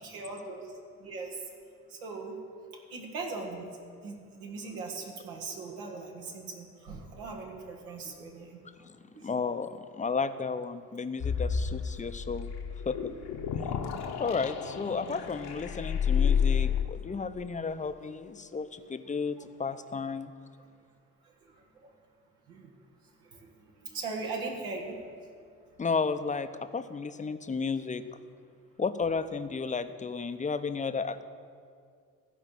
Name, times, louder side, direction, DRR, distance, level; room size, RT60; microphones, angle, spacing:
voice 1, 0.0-0.7 1.0-1.4 2.0-2.3 2.9-3.7 4.0-8.6 9.1-9.3 21.8-21.9 22.5-22.7 23.3-23.5 23.8-24.9, right 3 dB, 80° right, 0 dB, 1.6 m, -39 dB
voice 2, 9.2-12.5 12.9-13.1 13.6-13.7 14.2-20.3 25.8-26.5 26.7-28.0 28.8-31.2, left 5 dB, 20° left, 10 dB, 0.6 m, -33 dB
sound 1, 11.2-16.8, left 7 dB, 60° left, 1.1 m, -30 dB
14.5 x 5.0 x 7.3 m, 2.2 s
hypercardioid pair, 45°, 42 cm